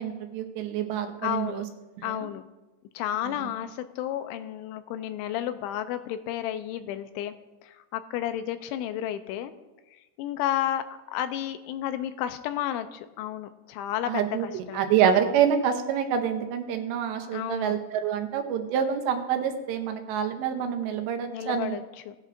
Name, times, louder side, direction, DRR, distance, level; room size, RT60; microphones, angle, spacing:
voice 1, 0.0-1.7 2.1-2.2 3.3-3.5 14.1-21.8, right 8 dB, 75° right, 6 dB, 2.9 m, -27 dB
voice 2, 1.2-1.6 2.0-2.4 2.9-7.3 7.6-9.5 9.9-14.8 17.3-17.8 21.3-22.2, left 11 dB, 85° left, 10 dB, 3.0 m, -32 dB
18.0 x 11.0 x 2.5 m, 1.1 s
omnidirectional pair, 5.3 m